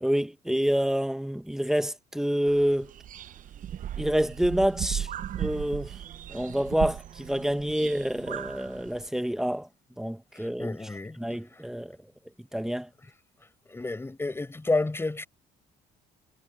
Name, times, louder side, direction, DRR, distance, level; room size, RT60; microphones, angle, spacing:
voice 1, 0.0-2.9 4.0-5.1 5.4-5.9 6.3-9.7 10.0-10.8 11.2-12.0 12.5-12.9, equal, 5° right, 1.4 m, -27 dB
sound 1, 2.5-9.1, right 10 dB, 50° right, 0.8 m, -37 dB
voice 2, 10.3-11.2 11.5-11.6 13.7-15.3, left 2 dB, 15° left, 4.9 m, -30 dB
cardioid pair, 110°, 17 cm